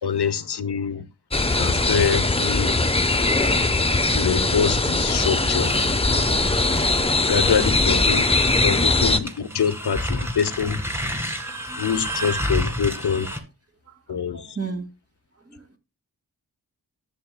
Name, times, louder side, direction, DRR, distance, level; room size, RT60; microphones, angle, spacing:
voice 1, 0.0-1.0 1.6-2.7 4.1-5.7 7.2-8.3 8.6-10.8 11.8-13.3 14.1-14.6, left 7 dB, 85° left, 0.9 m, -25 dB
sound 1, 1.3-9.2, left 2 dB, 15° left, 0.8 m, -21 dB
voice 2, 1.9-2.2 8.1-8.3 9.9-10.6 11.4-12.0 12.5-12.7 13.2-13.4 13.9-14.9 15.4-15.8, right 4 dB, 35° right, 2.1 m, -39 dB
sound 2, 5.6-13.4, equal, 5° right, 1.8 m, -31 dB
12.5 x 7.1 x 2.2 m
wide cardioid pair, 90°, 39 cm